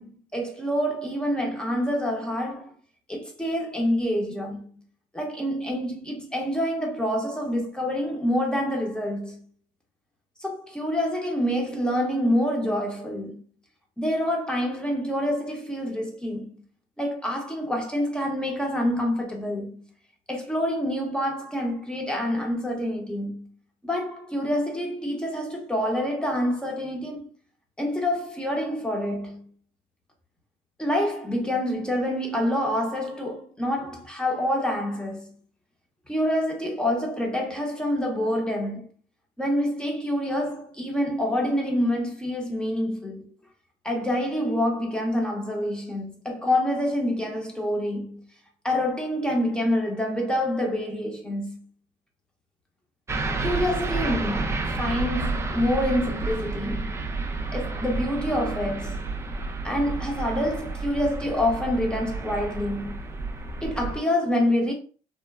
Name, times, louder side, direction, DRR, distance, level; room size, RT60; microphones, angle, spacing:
voice 1, 0.0-2.7 3.1-4.7 5.1-9.4 10.4-13.4 14.0-16.5 17.0-19.8 20.3-23.5 23.8-27.3 27.8-29.4 30.8-35.3 36.1-38.9 39.4-43.3 43.8-48.2 48.6-51.6 53.4-57.0 57.5-59.0 59.6-63.0 63.6-64.7, left 1 dB, 5° left, 0.8 m, -27 dB
sound 1, 53.1-64.0, right 3 dB, 15° right, 0.3 m, -30 dB
3.0 x 2.1 x 2.3 m
cardioid pair, 110°, 17 cm